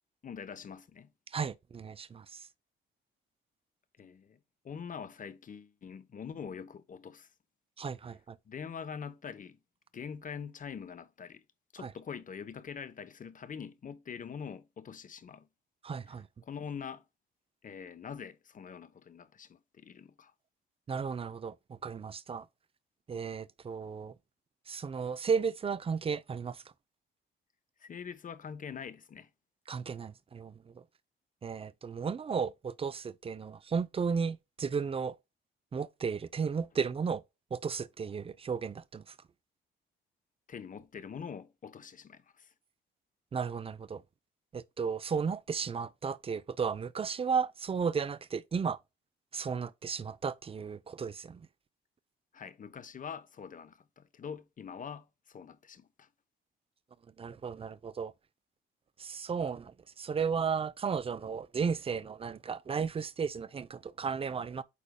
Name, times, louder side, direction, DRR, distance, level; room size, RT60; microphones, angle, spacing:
voice 1, 0.2-1.1 4.0-4.4 4.6-7.3 8.5-9.6 9.9-11.4 11.7-15.5 16.4-17.0 17.6-20.3 27.8-29.3 40.5-42.5 52.3-56.1, left 7 dB, 40° left, 0.9 m, -44 dB
voice 2, 1.3-2.5 7.8-8.4 11.8-11.9 15.8-16.3 20.9-22.5 23.1-24.1 24.7-26.6 29.7-30.8 31.4-35.2 35.7-37.2 37.5-39.2 43.3-44.0 44.5-48.8 49.3-51.5 57.2-58.1 59.0-64.6, right 6 dB, 30° right, 0.5 m, -34 dB
8.5 x 5.0 x 2.2 m
cardioid pair, 90°, 20 cm